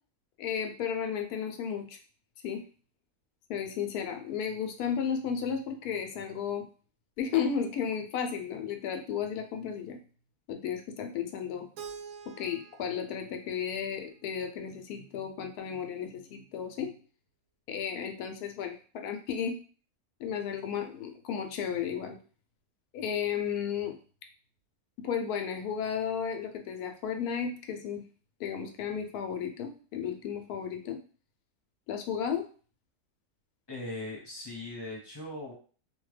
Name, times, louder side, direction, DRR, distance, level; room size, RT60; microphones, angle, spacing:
voice 1, 0.4-2.0 2.4-2.6 3.5-6.6 7.2-10.0 10.5-11.7 12.3-16.9 17.7-19.6 20.2-22.2 22.9-23.9 25.0-28.0 28.4-31.0 31.9-32.4, left 7 dB, 90° left, 5 dB, 1.1 m, -33 dB
Keyboard (musical), 11.8-14.7, right 6 dB, 75° right, 1.0 m, -48 dB
voice 2, 33.7-35.5, left 2 dB, 25° left, -4 dB, 0.7 m, -39 dB
2.9 x 2.1 x 3.2 m, 0.40 s
omnidirectional pair, 1.6 m